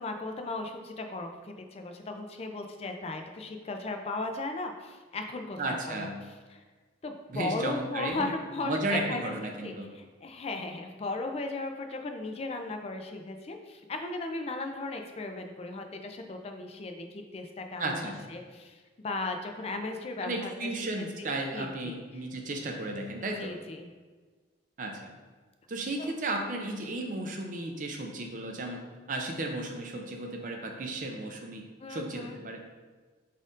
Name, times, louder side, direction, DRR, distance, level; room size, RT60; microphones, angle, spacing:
voice 1, 0.0-6.1 6.5-6.6 7.0-9.3 9.6-20.7 21.2-22.0 23.2-23.9 26.0-26.1 31.8-32.4, left 2 dB, 35° left, 5 dB, 0.4 m, -37 dB
voice 2, 5.6-6.3 7.3-8.3 8.6-9.9 17.8-18.2 20.2-23.5 24.8-25.1 25.7-28.8 29.1-31.6 31.9-32.8, right 2 dB, 45° right, 2 dB, 0.5 m, -34 dB
5.1 x 4.2 x 2.5 m, 1.4 s
head